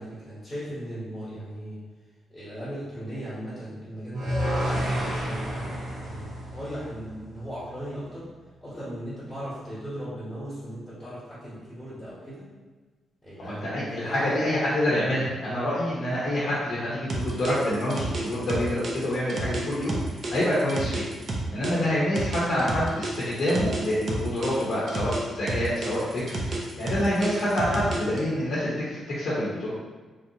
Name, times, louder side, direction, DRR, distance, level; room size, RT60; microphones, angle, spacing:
voice 1, 0.0-1.8 2.3-8.3 8.6-12.4 13.2-14.4, equal, 10° left, -11 dB, 1.0 m, -37 dB
sound 1, 4.1-7.3, equal, 65° right, 1.0 m, -30 dB
voice 2, 13.4-19.9 20.3-21.1 21.5-29.7, left 1 dB, 45° left, -8 dB, 0.7 m, -27 dB
sound 2, 17.1-21.7 22.2-25.2 25.5-28.2, right 2 dB, 40° right, 0.5 m, -30 dB
3.2 x 2.5 x 2.7 m, 1.3 s
wide cardioid pair, 170°, 0 cm